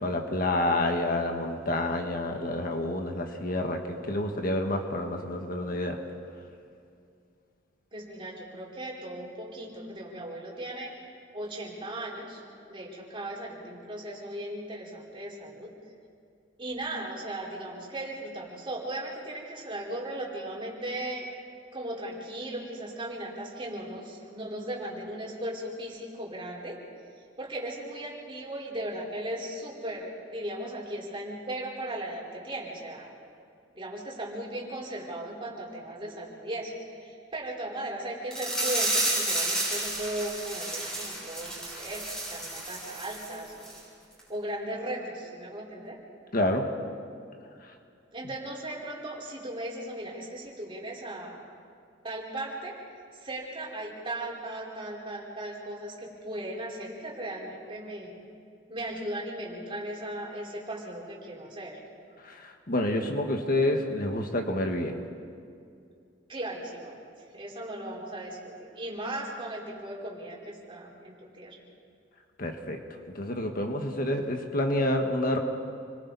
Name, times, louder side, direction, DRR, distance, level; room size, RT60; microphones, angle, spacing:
voice 1, 0.0-6.0 46.3-46.7 62.2-65.0 72.4-72.8 73.1-75.4, left 1 dB, 50° left, 3 dB, 1.7 m, -28 dB
voice 2, 7.9-10.9 11.3-12.4 12.7-15.7 16.6-21.3 21.7-26.8 27.4-33.1 33.7-36.7 37.0-43.8 44.3-46.0 48.1-51.4 52.0-52.8 53.2-58.1 58.7-61.8 66.3-67.0 67.3-71.6, right 1 dB, 30° right, -4 dB, 4.5 m, -37 dB
sound 1, 38.3-43.3 43.6-43.8 44.2-44.3, right 1 dB, 5° left, 6.7 m, -31 dB
29.5 x 22.5 x 4.2 m, 2.4 s
head